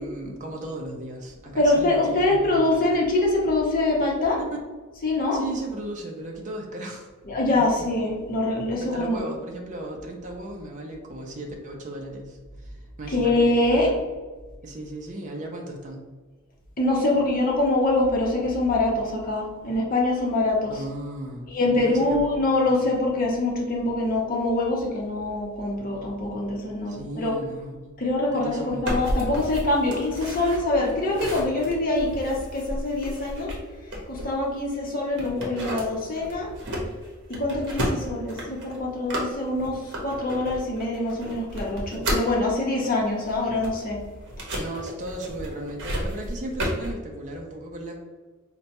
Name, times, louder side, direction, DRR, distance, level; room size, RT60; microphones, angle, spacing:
voice 1, 0.0-2.9 5.3-7.1 7.6-7.7 8.8-13.4 13.7-13.8 14.6-16.0 20.7-22.3 22.6-22.8 26.9-27.9 28.3-28.8 44.5-48.0, right 1 dB, 35° right, 1 dB, 0.4 m, -36 dB
voice 2, 1.6-4.4 5.0-5.4 7.3-9.2 13.1-14.0 16.8-20.8 21.5-27.3 28.0-33.5 34.1-36.5 37.4-44.0, left 2 dB, 40° left, -2 dB, 0.8 m, -24 dB
sound 1, 28.8-34.7 35.1-42.4 42.8-46.9, equal, 55° right, 0.8 m, -32 dB
4.2 x 2.2 x 2.8 m, 1.3 s
head